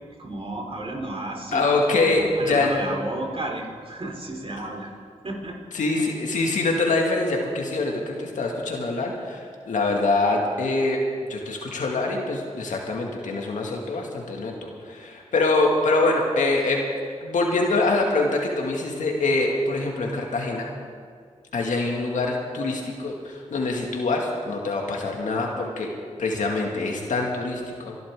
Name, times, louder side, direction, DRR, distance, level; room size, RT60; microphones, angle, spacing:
voice 1, 0.2-1.7 2.0-4.9 5.2-5.6, right 2 dB, 50° right, 0 dB, 3.6 m, -32 dB
voice 2, 1.5-2.7 5.7-11.0 11.3-16.8 17.2-20.7 21.5-25.9 26.2-28.0, left 2 dB, 85° left, 0 dB, 2.1 m, -24 dB
24.0 x 12.0 x 3.7 m, 2.1 s
cardioid pair, 50°, 13 cm